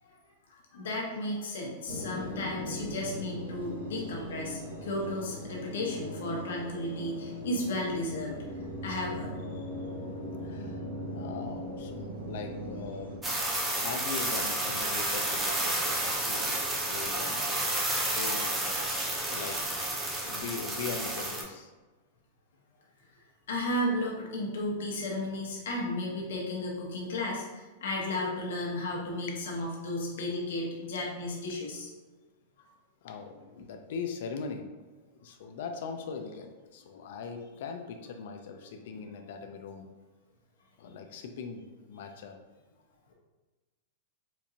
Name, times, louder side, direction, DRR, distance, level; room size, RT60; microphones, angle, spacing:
voice 1, 0.5-8.4 8.8-9.3 23.5-31.9, left 1 dB, 85° left, -2 dB, 1.1 m, -34 dB
sound 1, 1.9-13.2, equal, 85° right, 1.2 m, -39 dB
voice 2, 9.5-9.9 10.4-10.8 11.1-13.1 13.7-17.8 18.0-18.9 19.2-19.6 19.9-21.7 29.3-29.4 30.9-31.0 32.0-32.1 33.0-34.7 35.2-39.9 40.8-42.4, left 5 dB, 60° left, 5 dB, 0.4 m, -41 dB
sound 2, 13.2-21.4, right 1 dB, 10° right, 0.6 m, -31 dB
4.4 x 2.5 x 2.7 m, 1.2 s
supercardioid pair, 165°, 0 cm